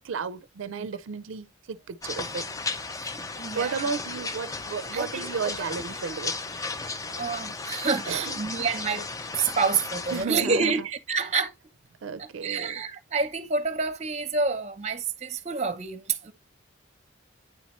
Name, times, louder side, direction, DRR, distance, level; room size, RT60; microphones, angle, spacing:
voice 1, 0.0-2.4 3.6-6.4 8.1-8.5 10.1-10.9 12.0-12.8, right 5 dB, 85° right, 0.4 m, -33 dB
sound 1, 2.0-10.3, left 3 dB, 15° left, 0.4 m, -35 dB
voice 2, 3.0-3.9 4.9-5.3 5.6-5.7 7.1-9.1 9.3-11.5 12.2-16.3, right 4 dB, 35° right, 0.7 m, -28 dB
9.4 x 4.2 x 3.0 m
head